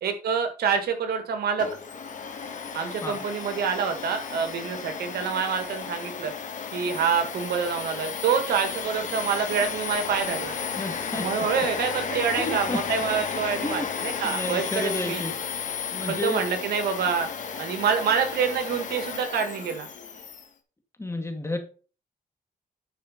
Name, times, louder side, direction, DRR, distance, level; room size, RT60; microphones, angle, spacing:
voice 1, 0.0-1.7 2.7-6.3 6.7-10.5 11.1-15.2 16.1-17.3 17.6-19.9, right 6 dB, 85° right, 7 dB, 1.7 m, -26 dB
Domestic sounds home sounds, 1.6-20.5, left 6 dB, 55° left, 1.5 m, -33 dB
voice 2, 10.8-11.3 12.4-12.8 13.6-13.9 14.2-15.3 15.9-16.4 21.0-21.6, left 2 dB, 15° left, 5 dB, 2.2 m, -31 dB
10.0 x 5.0 x 5.1 m, 0.36 s
cardioid pair, 80°, 16 cm